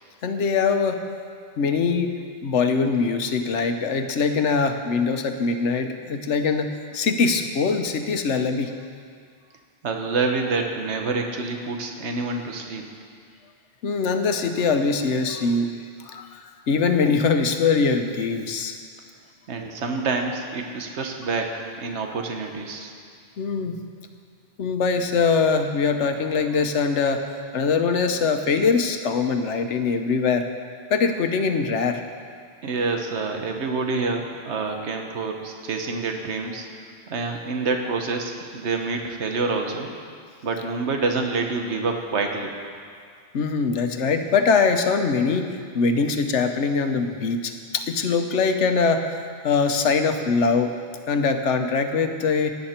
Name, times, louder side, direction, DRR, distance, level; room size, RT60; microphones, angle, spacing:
voice 1, 0.2-1.0 1.6-2.1 2.4-8.7 13.8-15.7 16.1-18.8 23.4-23.8 24.6-27.2 27.5-30.5 30.9-32.0 43.3-49.2 49.4-50.7 51.1-52.5, left 5 dB, 85° left, 6 dB, 1.2 m, -22 dB
voice 2, 9.8-12.8 19.5-22.9 32.6-36.7 37.1-39.9 40.4-42.5, right 3 dB, 75° right, 3 dB, 1.4 m, -27 dB
17.5 x 10.5 x 4.4 m, 2.1 s
omnidirectional pair, 1.2 m